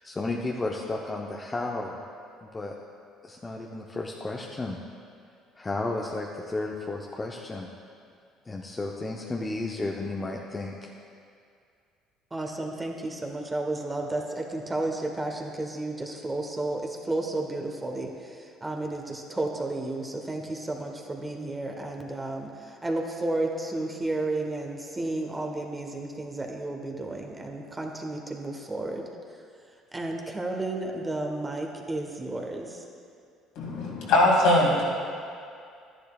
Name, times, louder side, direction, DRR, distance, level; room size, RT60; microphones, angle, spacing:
voice 1, 0.0-2.0 2.4-2.8 3.2-4.8 5.6-7.7 8.5-10.9, left 2 dB, 25° left, -1 dB, 0.7 m, -33 dB
voice 2, 12.3-29.0 29.9-32.8, right 2 dB, 20° right, 1 dB, 1.2 m, -32 dB
voice 3, 33.6-34.8, left 1 dB, 70° left, -3 dB, 2.3 m, -21 dB
11.5 x 10.0 x 2.4 m, 2.4 s
supercardioid pair, 70°, 0 cm